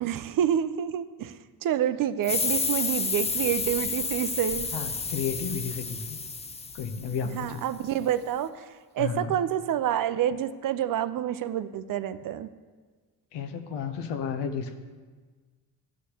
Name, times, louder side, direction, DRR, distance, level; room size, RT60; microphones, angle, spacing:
voice 1, 0.0-4.7 7.3-8.7 8.9-12.5, right 10 dB, 50° right, 13 dB, 0.5 m, -28 dB
sound 1, 2.2-7.5, left 4 dB, 15° left, 0.4 m, -31 dB
voice 2, 4.7-6.2 6.7-7.6 9.0-9.3 13.3-14.7, left 6 dB, 75° left, 7 dB, 0.9 m, -32 dB
11.5 x 6.3 x 2.9 m, 1.4 s
supercardioid pair, 65°, 42 cm